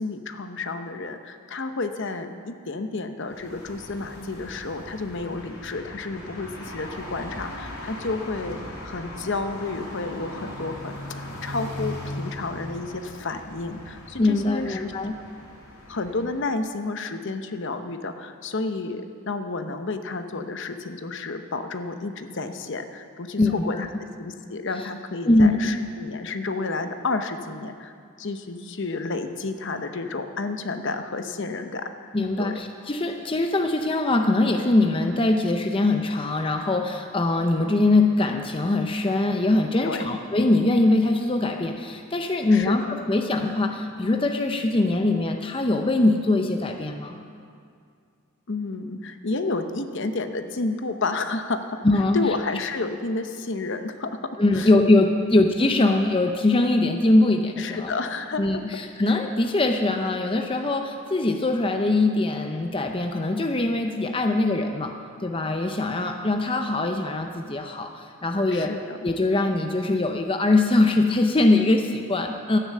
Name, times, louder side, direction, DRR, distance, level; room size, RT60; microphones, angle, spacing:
voice 1, 0.0-8.6 8.8-14.9 15.9-23.9 24.2-27.9 28.2-32.6 39.8-40.2 42.5-42.8 48.5-51.8 52.1-54.7 55.2-55.4 57.6-58.6 68.5-69.0, left 3 dB, 55° left, 8 dB, 0.8 m, -31 dB
sound 1, 3.2-16.5, left 1 dB, 80° left, 2.7 m, -39 dB
voice 2, 14.2-15.1 23.4-23.8 25.2-25.7 32.1-47.2 51.8-52.2 54.4-57.9 58.4-64.9 65.2-68.7 69.0-72.6, left 2 dB, 25° left, 4 dB, 0.6 m, -22 dB
13.0 x 10.0 x 7.5 m, 2.3 s
head